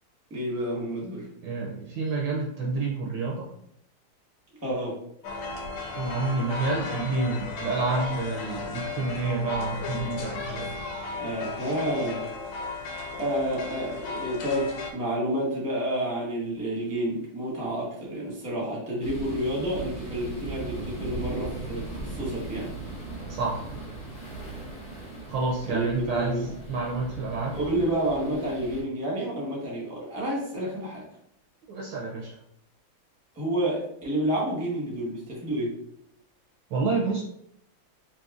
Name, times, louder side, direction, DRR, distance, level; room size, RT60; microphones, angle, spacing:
voice 1, 0.3-1.3 4.6-5.0 11.2-12.3 13.2-22.7 25.6-26.4 27.5-31.0 33.3-35.7, right 1 dB, 10° right, -4 dB, 0.7 m, -29 dB
voice 2, 1.4-3.5 6.0-10.7 23.3-23.7 25.3-27.5 31.7-32.4 36.7-37.2, right 3 dB, 75° right, -1 dB, 1.1 m, -29 dB
sound 1, 5.2-14.9, left 4 dB, 80° left, 1.4 m, -35 dB
sound 2, 19.0-28.8, right 2 dB, 60° left, 0.7 m, -39 dB
4.0 x 2.9 x 2.4 m, 0.73 s
omnidirectional pair, 2.4 m